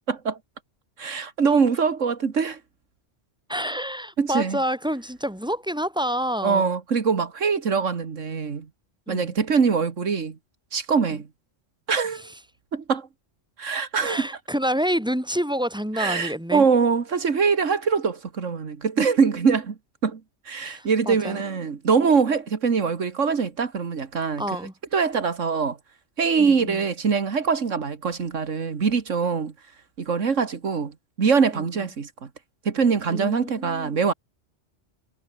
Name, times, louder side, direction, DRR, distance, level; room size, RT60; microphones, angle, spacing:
voice 1, 0.1-0.4 1.0-2.6 4.2-4.6 6.4-8.7 9.1-10.4 10.7-11.3 11.9-12.2 12.7-13.1 13.6-14.3 16.0-19.8 20.0-20.2 20.5-24.4 24.9-25.8 26.2-29.5 30.0-32.3 32.7-34.1, right 5 dB, 80° right, 2.1 m, -23 dB
voice 2, 3.5-6.7 9.1-9.3 11.1-11.2 12.1-12.3 14.0-16.7 20.6-21.4 24.4-24.7 26.4-26.8 31.5-31.7 33.1-34.0, equal, 5° right, 5.9 m, -28 dB
omnidirectional pair, 1.3 m